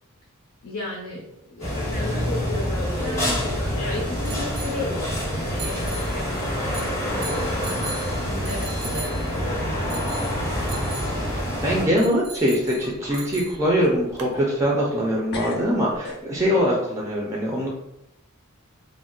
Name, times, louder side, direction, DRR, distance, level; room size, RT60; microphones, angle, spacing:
voice 1, 0.6-3.4 3.7-7.6 8.2-11.0, left 2 dB, 90° left, -4 dB, 0.6 m, -35 dB
sound 1, 1.6-11.9, equal, 15° left, 0.7 m, -27 dB
sound 2, 2.7-14.3, right 3 dB, 85° right, 0.5 m, -40 dB
sound 3, 9.1-9.5 9.7-9.8 12.4-12.5 12.8-13.3 13.8-15.0 15.3-16.6, left 2 dB, 50° left, 0.5 m, -40 dB
voice 2, 11.4-17.7, equal, 15° right, -2 dB, 0.4 m, -23 dB
2.3 x 2.0 x 3.6 m, 0.85 s
head